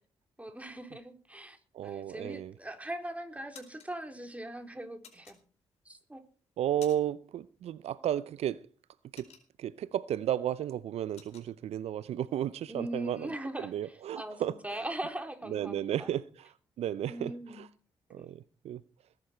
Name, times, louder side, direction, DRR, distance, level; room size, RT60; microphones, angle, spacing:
voice 1, 0.4-5.4 5.9-6.2 12.7-16.1 17.1-17.6 18.1-18.3, right 1 dB, 10° right, 3.9 m, -40 dB
voice 2, 1.7-2.5 6.6-8.7 9.1-9.2 9.6-13.3 13.6-14.8 15.5-17.7 18.1-18.8, right 11 dB, 70° right, 0.6 m, -33 dB
sound 1, 2.5-2.9 3.3-3.9 5.0-5.9 6.3-7.3 7.6-7.8 8.2-9.9 10.3-10.4 10.7-11.5, left 8 dB, 75° left, 4.3 m, -54 dB
19.5 x 11.0 x 4.5 m
hypercardioid pair, 45°, 11 cm